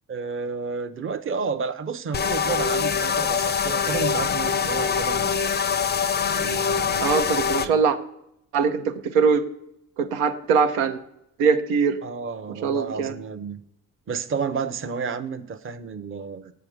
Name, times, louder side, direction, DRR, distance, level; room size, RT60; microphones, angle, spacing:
voice 1, 0.1-5.3 6.3-7.2 7.5-7.8 12.0-13.6 14.1-16.5, right 5 dB, 30° right, 0.7 m, -31 dB
sound 1, 2.1-7.7, left 6 dB, 25° left, 0.5 m, -24 dB
voice 2, 7.0-8.0 8.5-9.4 10.0-11.0 11.4-12.0 12.6-13.1, right 5 dB, 80° right, 0.7 m, -22 dB
7.7 x 4.4 x 5.0 m
hypercardioid pair, 50°, 43 cm